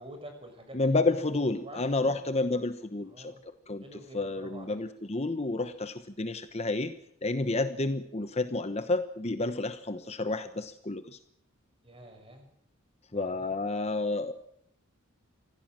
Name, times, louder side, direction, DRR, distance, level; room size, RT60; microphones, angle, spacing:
voice 1, 0.0-1.0 1.6-2.2 3.0-3.4 3.8-4.8 11.8-12.5 13.1-13.5, right 1 dB, 25° right, 5 dB, 6.2 m, -47 dB
voice 2, 0.7-3.3 3.7-6.9 7.2-11.2 13.1-14.3, left 2 dB, 30° left, 10 dB, 1.1 m, -30 dB
25.5 x 16.5 x 7.6 m, 0.72 s
head